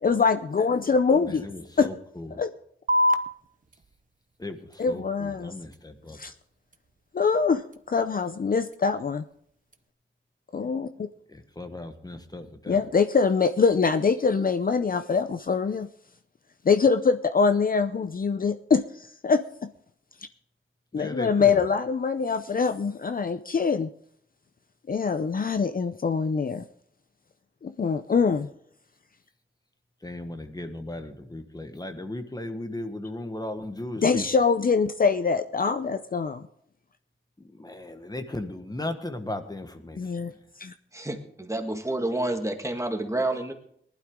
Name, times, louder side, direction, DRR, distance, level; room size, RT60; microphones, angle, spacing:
voice 1, 0.0-1.5 1.8-1.9 2.4-2.5 4.8-5.5 6.1-6.3 7.1-7.6 7.9-9.2 10.5-10.9 12.7-15.9 16.6-19.4 20.9-23.9 24.9-26.6 27.6-28.5 34.0-36.4 40.0-40.3 40.6-40.7, left 5 dB, 45° left, 10 dB, 0.5 m, -24 dB
voice 2, 1.2-2.4 4.4-6.2 11.3-12.8 20.9-21.6 30.0-34.3 37.4-40.1, left 1 dB, 20° left, 7 dB, 1.3 m, -36 dB
sound 1, 2.9-9.9, left 1 dB, 40° right, 0.9 m, -33 dB
voice 3, 40.9-43.5, right 2 dB, 15° right, 5 dB, 1.7 m, -29 dB
19.0 x 12.0 x 3.7 m, 0.66 s
wide cardioid pair, 95°, 21 cm